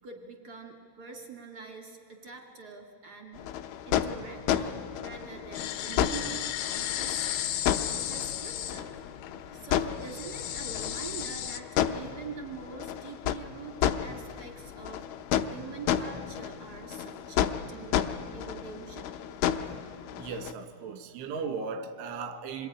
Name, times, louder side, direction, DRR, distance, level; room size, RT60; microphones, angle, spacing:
voice 1, 0.0-3.5 3.8-7.3 7.7-8.9 9.5-15.1 15.5-19.1, right 5 dB, 70° right, 0.9 m, -44 dB
sound 1, 3.4-20.5, left 10 dB, 90° left, 3.3 m, -32 dB
sound 2, 5.5-11.6, left 11 dB, 70° left, 2.4 m, -35 dB
voice 2, 20.2-22.7, right 5 dB, 90° right, 4.0 m, -36 dB
26.5 x 22.0 x 10.0 m
omnidirectional pair, 5.4 m